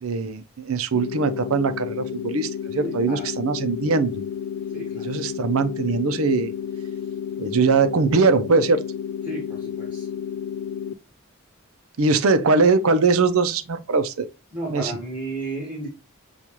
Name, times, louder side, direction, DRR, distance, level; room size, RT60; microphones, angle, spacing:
voice 1, 0.0-4.2 5.0-6.5 7.4-8.8 12.0-14.3 14.7-15.0, right 4 dB, 85° right, 0.6 m, -21 dB
sound 1, 0.9-10.9, left 8 dB, 60° left, 0.3 m, -31 dB
voice 2, 2.8-3.3 4.7-5.0 9.3-10.1 14.5-15.9, right 2 dB, 10° right, 1.5 m, -33 dB
6.8 x 2.4 x 3.0 m
head